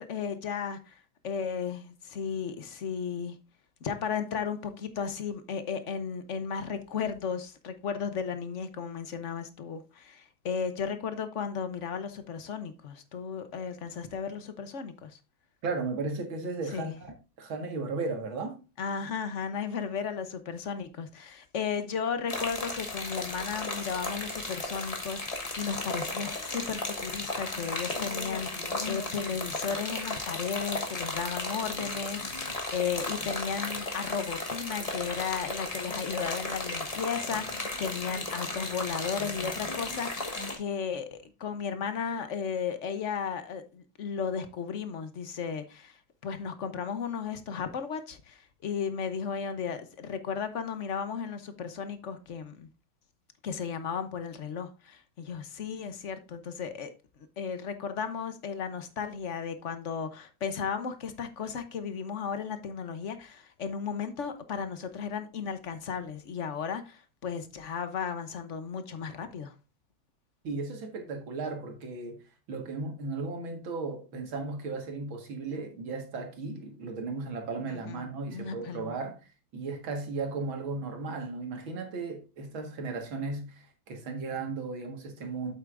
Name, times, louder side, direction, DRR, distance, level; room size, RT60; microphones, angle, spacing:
voice 1, 0.0-3.4 3.8-15.2 16.7-16.9 18.8-52.7 53.4-56.9 57.4-69.5 77.7-78.0 78.3-78.9, left 6 dB, 50° left, 0.9 m, -35 dB
voice 2, 15.6-18.6 70.4-72.2 72.5-85.5, right 3 dB, 80° right, 2.5 m, -35 dB
sound 1, 22.3-40.6, left 2 dB, 25° left, 1.1 m, -35 dB
8.2 x 8.0 x 2.5 m
omnidirectional pair, 2.2 m